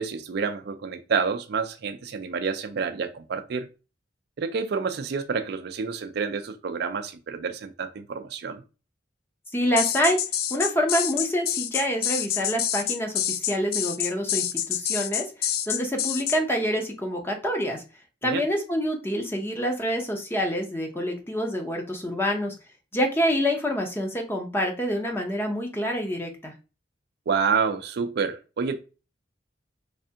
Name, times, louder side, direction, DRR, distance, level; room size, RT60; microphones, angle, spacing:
voice 1, 0.0-3.7 4.4-8.6 18.2-18.5 27.3-28.8, right 5 dB, 60° right, 0.4 m, -28 dB
voice 2, 9.5-10.2 10.5-17.8 18.2-22.5 22.9-26.5, equal, 15° left, 0.7 m, -27 dB
sound 1, 9.8-16.4, left 10 dB, 55° left, 0.3 m, -27 dB
3.4 x 3.3 x 2.8 m
head